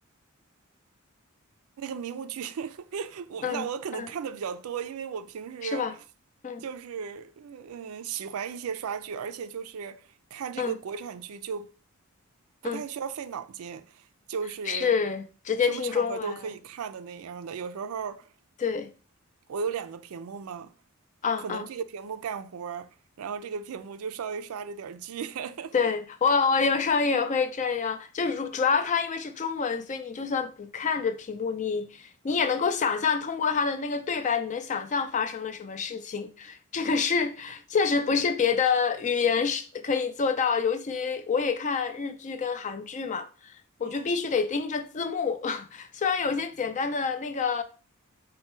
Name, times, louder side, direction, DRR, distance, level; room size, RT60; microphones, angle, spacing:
voice 1, 1.8-5.9 6.6-11.7 12.6-14.9 15.6-18.3 19.5-20.7 21.4-22.9 23.2-25.7 43.8-44.1, right 6 dB, 70° right, 0.4 m, -36 dB
voice 2, 5.6-5.9 6.4-6.6 10.6-10.7 12.6-12.8 14.7-16.4 18.6-18.9 21.2-21.7 25.7-43.5 43.8-47.6, left 5 dB, 35° left, 0.4 m, -27 dB
4.4 x 2.2 x 4.2 m
head